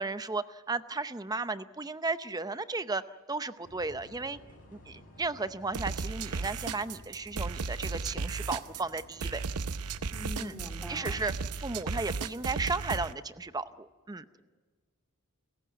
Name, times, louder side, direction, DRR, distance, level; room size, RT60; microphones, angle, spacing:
voice 1, 0.0-3.0 3.3-4.4 4.7-9.4 10.4-10.5 10.9-11.3 11.6-14.2, right 3 dB, 15° right, 12 dB, 0.7 m, -34 dB
sound 1, 3.6-12.6, left 1 dB, 40° left, 7.5 m, -54 dB
sound 2, 5.7-13.1, right 4 dB, 90° right, 0.7 m, -35 dB
voice 2, 10.1-11.2, left 1 dB, ahead, 2 dB, 2.3 m, -43 dB
30.0 x 15.0 x 9.4 m, 1.4 s
head